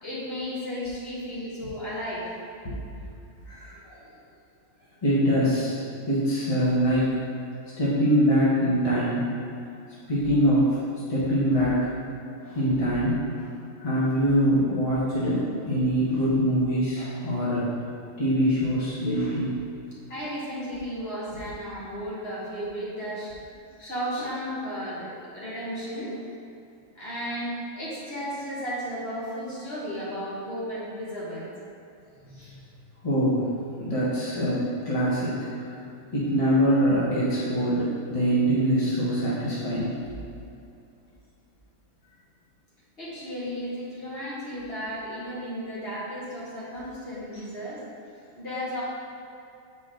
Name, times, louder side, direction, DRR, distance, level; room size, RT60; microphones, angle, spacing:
voice 1, 0.0-2.3 20.1-23.3 23.8-26.1 26.9-31.5 43.0-47.9 48.4-48.8, equal, 45° left, -8 dB, 1.9 m, -34 dB
voice 2, 3.5-4.0 5.0-7.2 7.8-9.2 10.1-11.9 12.4-13.5 13.8-17.7 18.2-19.5 32.2-32.5 33.0-33.5 33.8-35.7 36.1-40.2, equal, 25° left, -9 dB, 1.3 m, -24 dB
8.1 x 4.5 x 3.8 m, 2.6 s
omnidirectional pair, 1.4 m